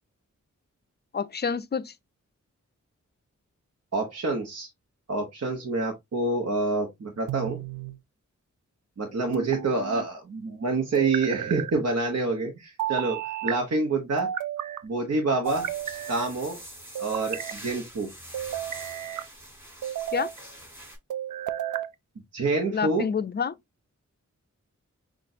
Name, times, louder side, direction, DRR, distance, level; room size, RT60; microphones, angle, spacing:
voice 1, 1.1-1.9 20.1-20.3 22.7-23.6, left 6 dB, 35° left, 0.4 m, -28 dB
voice 2, 3.9-4.7 5.1-7.6 9.0-14.3 14.8-15.7 16.1-16.6 17.0-18.1 22.3-23.1, right 3 dB, 60° right, 1.0 m, -27 dB
sound 1, 7.3-8.0 9.3-10.1 10.9-11.7 12.8-13.6 14.2-14.8 15.5-16.3 17.0-17.6 18.3-19.3 19.8-20.4 21.1-21.9, right 10 dB, 85° right, 0.5 m, -32 dB
sound 2, 15.4-21.0, right 1 dB, 5° right, 3.2 m, -44 dB
6.0 x 2.5 x 2.7 m
cardioid pair, 55°, 30 cm